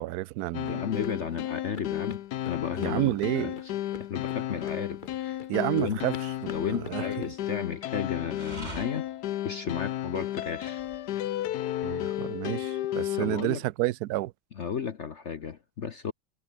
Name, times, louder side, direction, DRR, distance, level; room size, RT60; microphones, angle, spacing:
voice 1, 0.0-0.8 2.8-3.6 5.5-7.3 11.8-14.3, right 17 dB, 70° right, 1.0 m, -30 dB
Laptop Piano Practice, 0.5-13.4, left 13 dB, 65° left, 1.2 m, -33 dB
sound 1, 0.6-7.3, left 4 dB, 30° left, 1.3 m, -46 dB
voice 2, 0.7-3.5 4.0-5.4 5.7-6.0 6.5-9.1 9.4-10.8 13.2-13.6 14.6-16.1, left 7 dB, 50° left, 1.0 m, -34 dB
sound 2, 4.9-5.3 6.4-7.1 8.3-11.2 11.6-12.3, right 2 dB, 20° right, 3.8 m, -47 dB
omnidirectional pair, 2.0 m